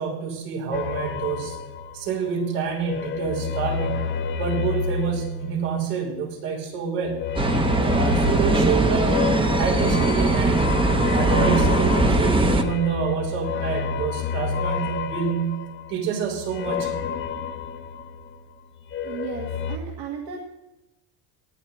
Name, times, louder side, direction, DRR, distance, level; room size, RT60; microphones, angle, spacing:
voice 1, 0.0-1.6 1.9-4.1 4.4-7.2 7.8-9.2 9.5-10.7 11.1-17.0, right 6 dB, 85° right, 0 dB, 5.6 m, -27 dB
sound 1, 0.7-2.3 2.7-6.2 7.1-18.4 18.7-19.8, left 6 dB, 25° left, 0.7 m, -30 dB
sound 2, 7.4-12.6, right 2 dB, 10° right, 0.8 m, -20 dB
voice 2, 19.0-20.4, right 6 dB, 65° right, 0 dB, 2.2 m, -35 dB
19.0 x 11.5 x 4.4 m, 0.96 s
cardioid pair, 150°, 48 cm